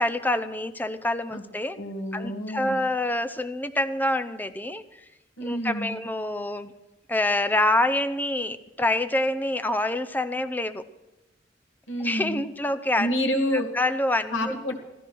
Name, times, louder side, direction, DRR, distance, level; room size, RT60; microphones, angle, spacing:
voice 1, 0.0-1.8 2.1-4.8 5.4-6.7 7.1-10.8 12.0-13.1 13.5-14.5, left 1 dB, 10° left, 10 dB, 0.6 m, -26 dB
voice 2, 1.8-2.8 5.4-6.0 11.9-12.4 13.0-13.7 14.3-14.8, equal, 85° left, 1 dB, 2.2 m, -28 dB
15.0 x 14.0 x 6.2 m, 1.0 s
head